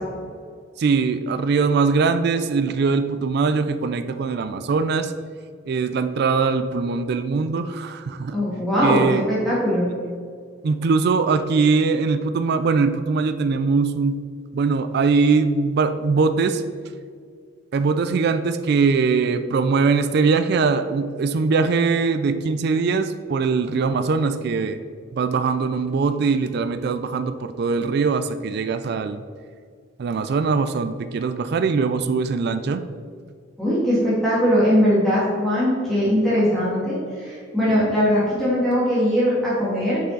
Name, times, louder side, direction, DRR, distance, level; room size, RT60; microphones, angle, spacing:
voice 1, 0.8-5.1 5.7-8.4 8.8-9.2 10.6-14.2 14.5-16.6 17.7-24.8 25.1-29.2 30.0-32.8, right 4 dB, 55° right, 10 dB, 0.3 m, -21 dB
voice 2, 8.3-9.9 33.6-40.0, equal, ahead, -10 dB, 1.8 m, -20 dB
6.3 x 5.7 x 3.9 m, 2.1 s
head